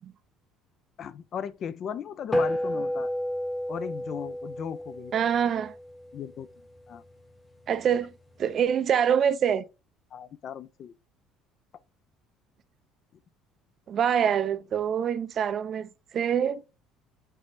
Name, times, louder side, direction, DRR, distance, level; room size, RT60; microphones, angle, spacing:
voice 1, 1.0-3.1 3.7-5.1 6.1-6.5 6.9-7.0 10.1-10.9, left 8 dB, 50° left, 0.3 m, -36 dB
sound 1, 2.3-7.0, equal, 15° left, 0.7 m, -31 dB
voice 2, 5.1-5.7 7.7-8.1 8.4-9.6 13.9-16.6, right 8 dB, 50° right, 0.3 m, -25 dB
3.3 x 3.2 x 2.6 m
supercardioid pair, 75°, 0 cm